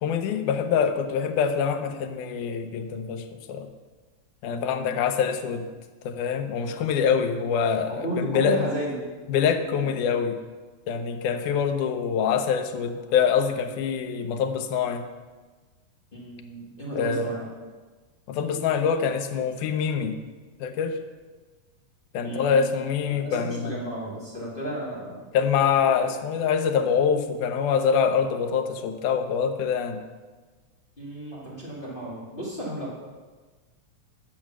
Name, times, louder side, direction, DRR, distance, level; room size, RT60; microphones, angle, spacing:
voice 1, 0.0-3.7 4.4-5.7 6.1-8.7 9.3-10.4 10.9-15.0 17.0-17.3 18.3-20.2 20.6-21.0 22.1-23.8 25.3-30.0, left 7 dB, 90° left, 6 dB, 2.2 m, -25 dB
voice 2, 4.5-4.9 7.9-9.0 9.7-9.9 16.1-17.5 22.2-22.6 23.1-25.2 25.8-25.9 31.0-33.0, right 1 dB, 20° left, -6 dB, 1.6 m, -34 dB
10.5 x 6.3 x 6.0 m, 1.3 s
omnidirectional pair, 3.5 m